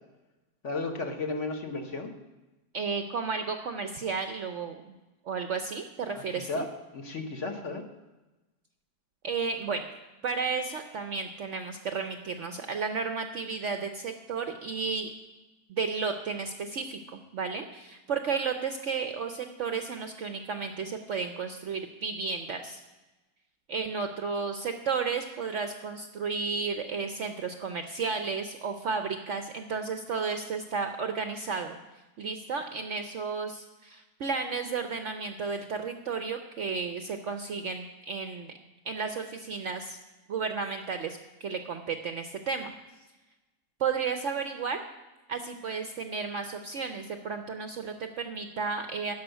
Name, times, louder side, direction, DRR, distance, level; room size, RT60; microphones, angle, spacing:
voice 1, 0.6-2.1 6.4-6.7 6.9-7.8, left 3 dB, 50° left, 3 dB, 1.3 m, -33 dB
voice 2, 2.7-4.8 5.3-6.7 9.2-9.9 10.2-15.1 15.7-22.8 23.7-31.8 32.2-38.5 38.8-40.0 40.3-42.7 43.8-44.8 45.3-49.1, right 5 dB, 60° right, 6 dB, 0.8 m, -33 dB
12.5 x 5.6 x 7.9 m, 1.1 s
omnidirectional pair, 1.8 m